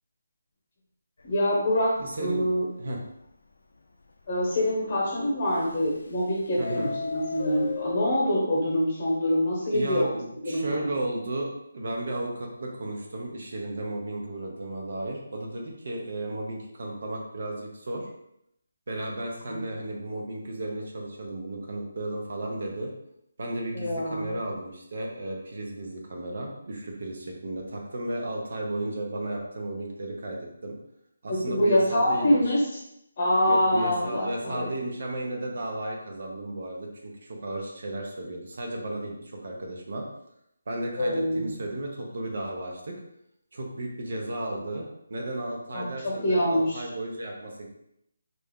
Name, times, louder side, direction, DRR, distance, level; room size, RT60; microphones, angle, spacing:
Subway metro underground, 1.2-1.5 2.0-2.1 2.3-2.4 3.0-3.1 5.5-6.2 6.5-8.2, left 5 dB, 75° left, 0.4 m, -35 dB
voice 1, 1.2-2.7 4.3-10.1 10.4-10.9 19.5-19.6 23.7-24.3 31.3-32.6 33.2-34.7 41.0-41.5 45.7-46.8, equal, 30° left, -3 dB, 1.1 m, -25 dB
voice 2, 2.0-2.5 2.8-3.0 6.6-6.9 9.7-18.1 18.9-22.9 23.4-30.8 31.2-32.4 33.5-40.1 40.7-42.9 43.5-47.7, right 1 dB, 50° right, 0 dB, 0.7 m, -34 dB
3.3 x 2.5 x 3.6 m, 0.78 s
hypercardioid pair, 175°, 0 cm